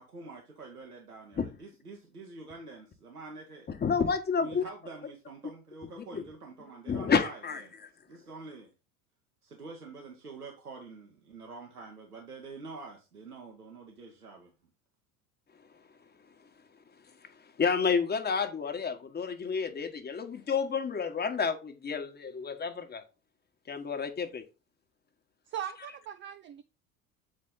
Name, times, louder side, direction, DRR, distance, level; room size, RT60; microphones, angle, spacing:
voice 1, 0.0-3.7 4.3-7.7 8.1-8.7 9.4-14.5, right 3 dB, 90° right, 1.2 m, -46 dB
voice 2, 3.8-4.6 6.1-6.2 6.9-7.6 17.6-23.0 23.7-24.4, left 6 dB, 20° left, 1.3 m, -30 dB
voice 3, 25.5-26.6, right 10 dB, 30° right, 0.4 m, -39 dB
7.7 x 4.2 x 3.8 m
figure-of-eight pair, 70°, 44 cm